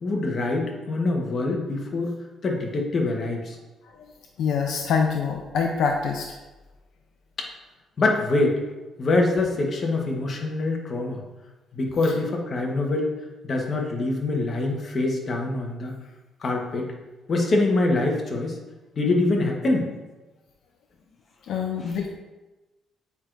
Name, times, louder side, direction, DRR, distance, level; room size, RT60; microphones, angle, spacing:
voice 1, 0.0-2.1 2.4-3.6 7.4-7.5 8.0-8.6 9.0-11.2 11.7-13.1 13.4-15.9 16.4-16.9 17.3-18.6 19.0-19.9 21.5-21.6 21.8-21.9, left 2 dB, 45° left, 1 dB, 1.2 m, -24 dB
voice 2, 4.4-6.3 21.5-22.1, left 6 dB, 80° left, 2 dB, 0.5 m, -25 dB
8.2 x 4.6 x 2.6 m, 1.1 s
cardioid pair, 90°, 0 cm